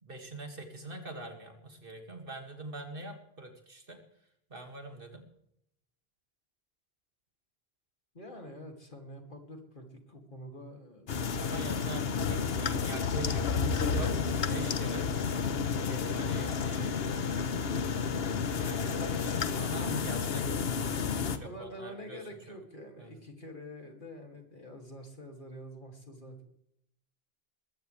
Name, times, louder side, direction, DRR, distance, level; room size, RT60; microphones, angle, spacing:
voice 1, 0.0-4.0 4.5-5.3 11.4-15.1 15.9-17.3 18.6-20.8 21.1-22.2 23.0-23.1, right 2 dB, 60° right, 4 dB, 2.4 m, -44 dB
voice 2, 8.1-11.6 21.3-26.4, equal, 55° left, 3 dB, 2.8 m, -47 dB
sound 1, 11.1-21.4, left 5 dB, 70° left, 1.2 m, -31 dB
21.0 x 15.5 x 3.3 m, 0.76 s
omnidirectional pair, 1.1 m